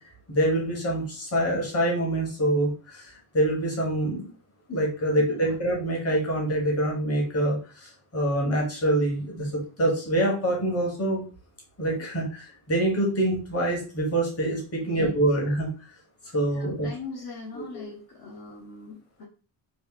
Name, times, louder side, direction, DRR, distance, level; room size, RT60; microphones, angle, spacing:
voice 1, 0.3-4.3 4.7-11.2 11.8-15.7 16.3-16.9 17.5-17.9, right 1 dB, 30° left, 0 dB, 1.2 m, -25 dB
voice 2, 5.2-5.5 14.8-15.1 16.5-19.2, left 4 dB, 60° left, -1 dB, 0.8 m, -41 dB
3.1 x 2.7 x 3.7 m, 0.36 s
wide cardioid pair, 175°, 44 cm